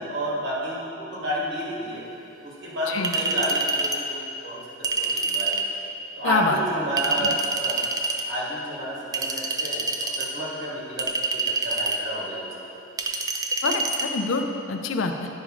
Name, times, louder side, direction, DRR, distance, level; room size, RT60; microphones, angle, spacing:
voice 1, 0.0-2.0 2.4-5.6 6.2-7.9 8.2-12.5, right 1 dB, 60° right, -6 dB, 1.8 m, -31 dB
Chink clink, 3.0-4.0 4.8-5.7 7.0-8.2 9.1-10.3 11.0-12.0 13.0-14.1, right 3 dB, 20° right, 0.3 m, -26 dB
voice 2, 6.2-6.6 7.2-7.3 13.6-15.3, left 4 dB, 80° left, 5 dB, 0.5 m, -26 dB
9.9 x 5.0 x 3.8 m, 2.8 s
head